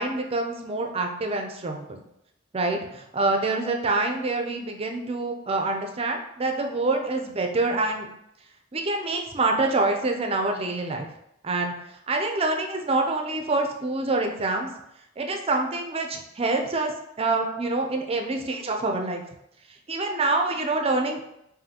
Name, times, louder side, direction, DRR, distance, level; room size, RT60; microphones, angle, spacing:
voice 1, 0.0-2.0 2.5-8.1 8.7-11.1 11.4-11.7 12.1-14.7 15.2-19.2 19.9-21.2, right 2 dB, 30° right, 3 dB, 0.5 m, -26 dB
5.1 x 2.7 x 2.9 m, 0.80 s
head